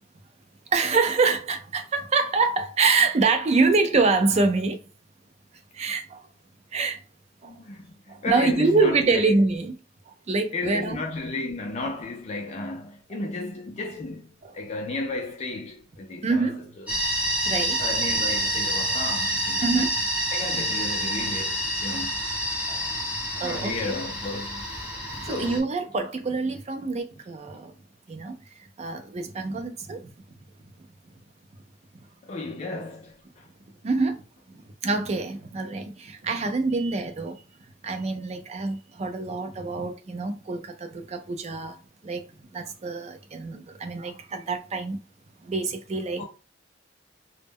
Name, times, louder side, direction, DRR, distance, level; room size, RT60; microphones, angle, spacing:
voice 1, 0.7-4.8 5.7-6.2 6.7-7.0 7.4-7.5 8.1-9.8 10.3-11.0 14.4-14.5 16.2-16.7 17.4-17.8 19.6-20.0 22.7-22.8 23.4-24.0 25.1-27.7 28.1-28.4 28.8-30.0 33.8-34.2 34.8-37.4 37.8-41.8 42.0-42.3 42.5-45.0 45.4-46.2, right 3 dB, 35° right, 0.4 m, -25 dB
voice 2, 7.4-9.2 10.5-16.9 17.8-19.9 20.3-22.2 23.4-25.7 32.2-33.5 46.2-46.3, left 3 dB, 35° left, 0.3 m, -34 dB
sound 1, 16.9-25.6, equal, 10° right, 0.9 m, -28 dB
2.1 x 2.0 x 3.4 m
head